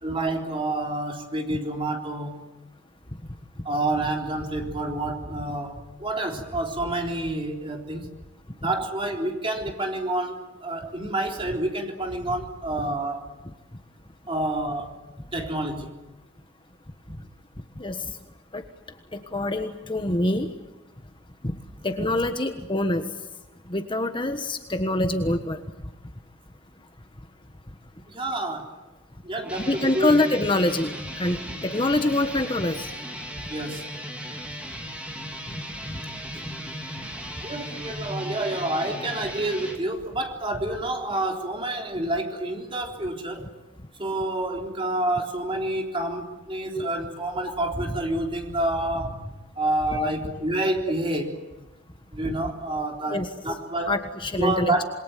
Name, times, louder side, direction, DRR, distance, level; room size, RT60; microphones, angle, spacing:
voice 1, 0.0-2.4 3.6-8.1 8.6-13.3 14.3-15.0 15.3-15.9 28.1-28.7 29.2-30.2 33.5-33.8 35.8-36.0 37.4-43.5 44.0-49.3 49.6-51.3 52.1-54.0 54.4-54.8, right 1 dB, 25° right, 2 dB, 3.8 m, -28 dB
voice 2, 17.8-18.1 18.5-18.6 19.1-20.5 21.4-21.5 21.8-23.0 23.7-25.6 29.7-30.9 31.2-31.4 31.6-32.9 35.5-35.6 46.7-46.9 49.9-50.1 53.1-53.3 53.9-54.7, left 2 dB, 25° left, 7 dB, 1.4 m, -25 dB
sound 1, 29.4-39.8, equal, 5° right, 3.8 m, -37 dB
27.5 x 22.0 x 9.2 m, 1.0 s
head